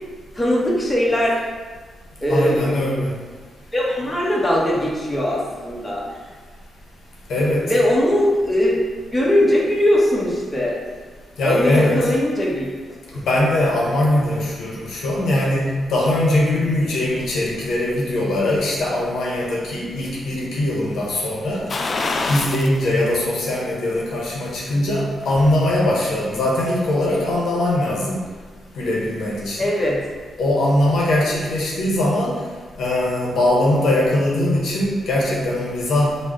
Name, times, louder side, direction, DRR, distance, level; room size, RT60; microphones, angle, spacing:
voice 1, 0.3-1.4 2.2-2.7 3.7-6.0 7.6-8.8 9.1-10.8 11.4-12.7 29.6-30.0, left 1 dB, 20° left, -5 dB, 0.9 m, -20 dB
voice 2, 2.3-3.1 7.3-7.7 11.4-12.0 13.1-21.7 22.3-28.2 28.8-29.7 30.4-32.4 32.8-36.2, left 1 dB, 80° left, -4 dB, 0.7 m, -21 dB
sound 1, 21.7-22.8 23.2-23.3 24.8-25.6 25.9-26.0, left 3 dB, 45° left, 0.3 m, -26 dB
3.5 x 2.1 x 3.7 m, 1.4 s
cardioid pair, 65°, 0 cm